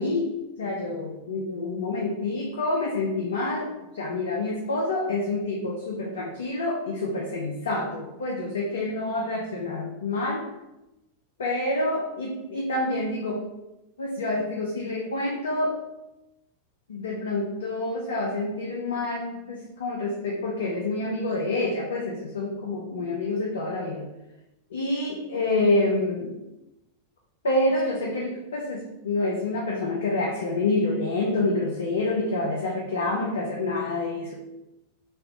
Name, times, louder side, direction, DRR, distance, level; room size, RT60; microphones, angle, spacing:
voice 1, 0.0-10.5 11.4-13.5 14.0-15.8 16.9-24.1 24.7-26.4 27.4-34.3, left 2 dB, 65° left, -2 dB, 0.5 m, -27 dB
3.2 x 2.5 x 2.8 m, 0.94 s
figure-of-eight pair, 90°, 0 cm